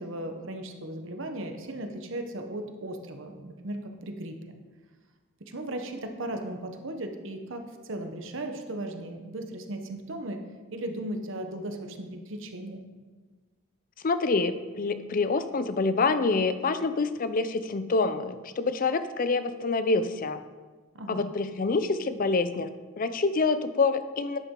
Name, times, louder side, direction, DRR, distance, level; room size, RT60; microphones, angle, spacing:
voice 1, 0.0-4.5 5.4-10.4 10.7-12.8 20.9-21.2, right 1 dB, 60° right, 5 dB, 1.0 m, -36 dB
voice 2, 14.0-20.4 21.1-24.4, left 3 dB, 40° left, 11 dB, 0.5 m, -26 dB
10.0 x 8.2 x 3.8 m, 1.4 s
head